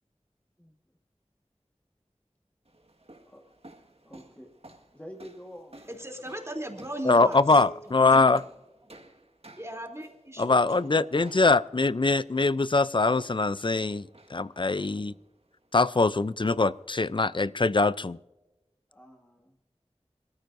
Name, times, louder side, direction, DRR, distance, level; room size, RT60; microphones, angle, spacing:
sound 1, 2.6-16.9, right 1 dB, 60° right, 1.8 m, -55 dB
voice 1, 4.0-4.5 4.9-5.8 18.9-19.6, equal, 15° left, 1 dB, 1.6 m, -47 dB
voice 2, 5.9-8.2 9.6-10.6 10.9-11.1 14.8-15.2, right 1 dB, 25° right, 2 dB, 3.3 m, -38 dB
voice 3, 7.0-8.4 10.4-15.1 15.7-18.2, left 3 dB, 45° left, 16 dB, 0.5 m, -23 dB
26.5 x 14.0 x 2.7 m, 1.0 s
wide cardioid pair, 40°, 12 cm